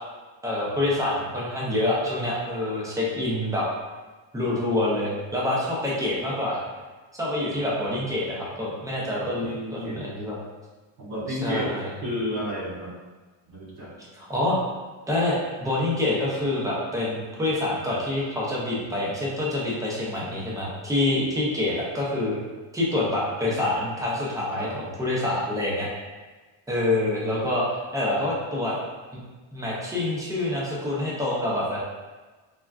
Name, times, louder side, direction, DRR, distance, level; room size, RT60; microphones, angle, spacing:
voice 1, 0.4-3.7 4.3-6.6 7.1-9.5 9.7-10.4 11.3-11.9 14.1-14.6 15.1-22.4 22.7-25.9 26.7-27.6 27.9-28.7 29.1-29.2 29.5-31.8, left 1 dB, 10° right, -5 dB, 0.4 m, -26 dB
voice 2, 9.2-10.1 11.0-11.7 12.0-12.9 13.5-13.9 23.5-23.6 24.5-24.7, equal, 80° right, -7 dB, 1.5 m, -32 dB
3.5 x 2.2 x 2.2 m, 1.3 s
cardioid pair, 140°, 48 cm